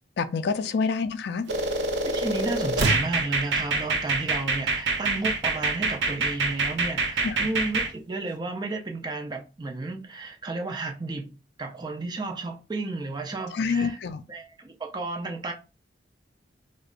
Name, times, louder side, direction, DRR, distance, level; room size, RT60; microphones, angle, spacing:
voice 1, 0.2-1.5 7.2-7.4 13.5-14.2, left 5 dB, 65° left, 0.4 m, -27 dB
sound 1, 1.5-7.9, right 3 dB, 85° right, 0.6 m, -26 dB
voice 2, 2.0-11.3 11.6-14.0 14.3-15.5, right 2 dB, 25° right, 0.5 m, -32 dB
4.9 x 2.0 x 2.4 m
head